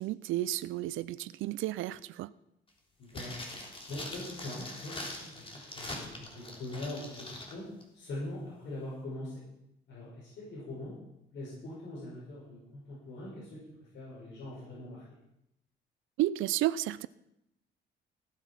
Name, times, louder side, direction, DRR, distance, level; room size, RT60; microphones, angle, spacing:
voice 1, 0.0-2.3 16.2-17.1, right 14 dB, 85° right, 18 dB, 0.4 m, -32 dB
voice 2, 3.0-3.5 3.9-5.4 5.7-7.6 7.9-9.4 9.9-10.9 11.3-13.6 13.9-15.0, left 1 dB, 65° left, -8 dB, 6.7 m, -42 dB
sound 1, 3.1-7.5 7.8-7.9, left 1 dB, 25° left, 3.4 m, -43 dB
17.0 x 8.1 x 5.9 m, 0.84 s
cardioid pair, 90°, 20 cm